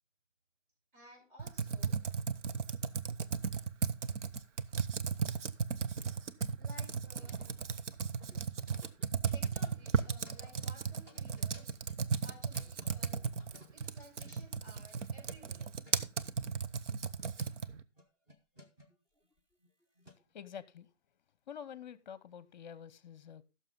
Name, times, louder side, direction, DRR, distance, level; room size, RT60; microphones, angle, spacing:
voice 1, 0.9-2.0 6.6-7.4 9.3-11.8 12.2-13.3 13.7-15.7, equal, 40° right, 5.6 m, -57 dB
Computer keyboard, 1.4-17.8, right 6 dB, 70° right, 0.9 m, -35 dB
sound 1, 7.1-7.9 8.2-12.9 13.4-16.2 17.0-17.5 18.0-20.4, equal, 10° right, 0.7 m, -59 dB
voice 2, 20.3-20.9 21.5-23.4, left 8 dB, 35° left, 0.8 m, -47 dB
15.0 x 6.6 x 3.7 m
hypercardioid pair, 150°, 37 cm